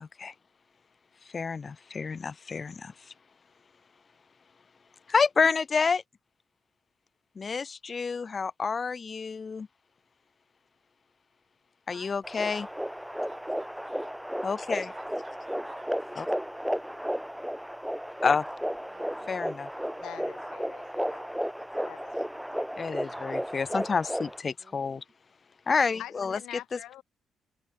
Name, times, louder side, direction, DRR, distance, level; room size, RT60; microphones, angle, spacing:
voice 1, 0.0-0.3 1.3-2.9 5.1-6.0 7.4-9.7 11.9-12.7 14.4-14.9 16.2-16.3 18.2-18.4 19.3-19.7 22.8-25.0 25.7-26.4 26.7-26.8, left 5 dB, 35° left, 0.7 m, -29 dB
voice 2, 11.9-12.8 13.3-14.2 14.8-16.4 17.1-17.3 18.9-19.6 21.3-22.0 24.6-25.0, right 4 dB, 35° right, 3.5 m, -56 dB
sound 1, 12.2-24.4, equal, ahead, 1.3 m, -34 dB
voice 3, 20.0-21.3 21.8-22.2 26.0-27.0, left 13 dB, 85° left, 2.8 m, -45 dB
cardioid pair, 90°, 0 cm